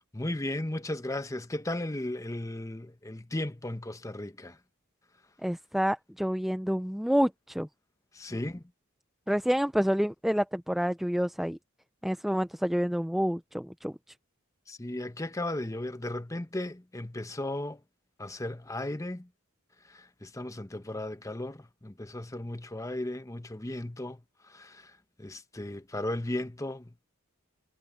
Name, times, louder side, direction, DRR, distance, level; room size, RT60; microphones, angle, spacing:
voice 1, 0.1-4.6 8.1-8.6 14.7-17.8 18.2-19.3 19.8-26.9, left 1 dB, 15° left, 0.8 m, -36 dB
voice 2, 5.4-7.7 9.3-11.6 12.0-13.9, equal, ahead, 0.3 m, -28 dB
head